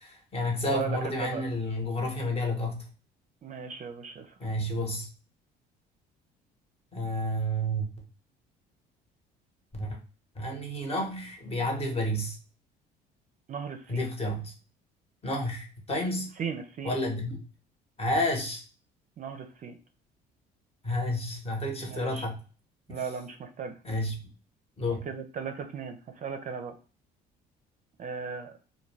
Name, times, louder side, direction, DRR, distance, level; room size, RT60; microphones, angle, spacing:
voice 1, 0.0-2.8 4.4-5.1 6.9-7.9 9.7-10.0 10.4-12.4 13.9-14.5 15.2-16.3 16.8-17.4 18.0-18.6 20.8-22.3 22.9-23.0 23.8-24.2 24.8-25.0, left 1 dB, 30° left, 2 dB, 0.9 m, -30 dB
voice 2, 0.7-1.4 3.4-4.3 13.5-14.1 16.4-16.9 19.2-19.8 21.8-22.3 22.9-23.8 25.1-26.8 28.0-28.6, right 6 dB, 40° right, 6 dB, 0.4 m, -37 dB
2.2 x 2.2 x 3.2 m, 0.36 s
supercardioid pair, 80°, 20 cm